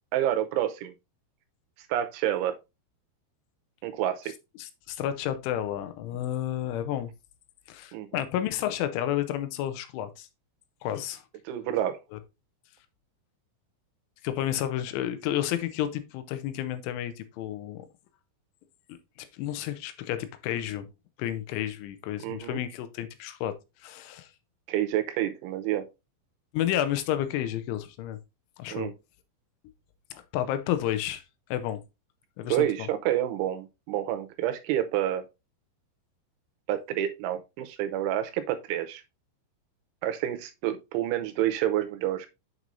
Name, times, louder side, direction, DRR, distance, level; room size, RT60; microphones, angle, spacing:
voice 1, 0.1-0.9 1.9-2.6 3.8-4.2 7.9-8.2 11.5-12.0 22.2-22.6 24.7-25.9 28.7-28.9 32.5-35.2 36.7-39.0 40.0-42.3, right 12 dB, 90° right, 3.1 m, -28 dB
voice 2, 4.6-7.1 7.7-10.3 10.8-11.2 12.1-12.2 14.2-17.9 19.2-20.9 21.2-23.5 23.8-24.3 26.5-28.2 28.6-28.9 30.1-31.2 31.5-31.8 32.4-32.9, left 11 dB, 90° left, 3.2 m, -31 dB
7.6 x 6.1 x 2.6 m
omnidirectional pair, 5.5 m